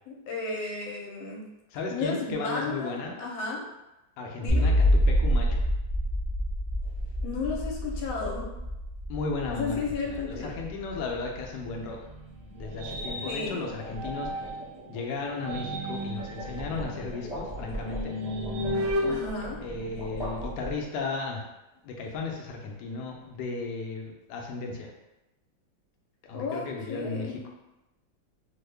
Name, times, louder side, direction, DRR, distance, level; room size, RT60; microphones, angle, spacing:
voice 1, 0.1-1.4 1.9-3.6 4.4-4.7 7.2-8.5 9.5-10.5 13.3-13.7 19.1-19.6 26.3-27.4, left 4 dB, 90° left, -1 dB, 1.4 m, -33 dB
voice 2, 1.7-3.2 4.2-5.6 9.1-12.0 12.6-14.3 14.9-18.1 19.6-21.5 21.8-24.9 26.2-27.5, left 4 dB, 75° left, 0 dB, 1.1 m, -35 dB
sound 1, 4.5-11.7, equal, 65° right, 0.5 m, -27 dB
sound 2, 6.8-7.1 12.3-21.2, equal, 20° left, 0.8 m, -40 dB
sound 3, 11.6-14.7 15.3-20.4, equal, 85° right, 1.4 m, -35 dB
3.6 x 2.1 x 3.3 m, 0.95 s
omnidirectional pair, 2.1 m